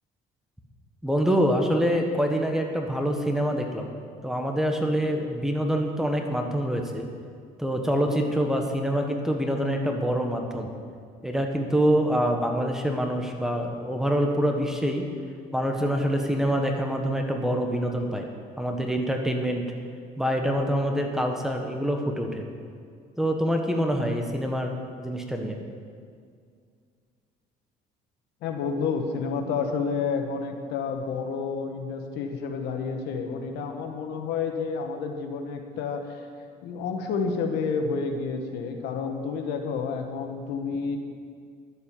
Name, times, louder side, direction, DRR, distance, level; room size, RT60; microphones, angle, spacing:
voice 1, 1.0-3.9 4.2-7.1 7.6-10.7 11.2-15.0 15.5-18.3 18.6-19.6 20.2-22.4 23.2-25.6, equal, 5° right, 2 dB, 1.4 m, -25 dB
voice 2, 28.4-36.3 36.6-41.0, left 5 dB, 85° left, 5 dB, 1.3 m, -30 dB
11.5 x 7.8 x 7.3 m, 2.2 s
cardioid pair, 110°, 17 cm